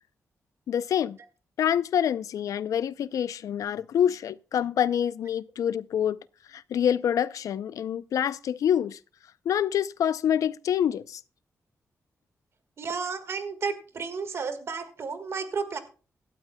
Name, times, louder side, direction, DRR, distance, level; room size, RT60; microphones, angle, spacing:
voice 1, 0.7-1.2 1.6-6.2 6.5-9.0 9.5-11.2, left 9 dB, 80° left, 0.5 m, -26 dB
voice 2, 12.8-15.8, right 5 dB, 50° right, 1.6 m, -32 dB
17.5 x 12.5 x 2.2 m
wide cardioid pair, 155°, 6 cm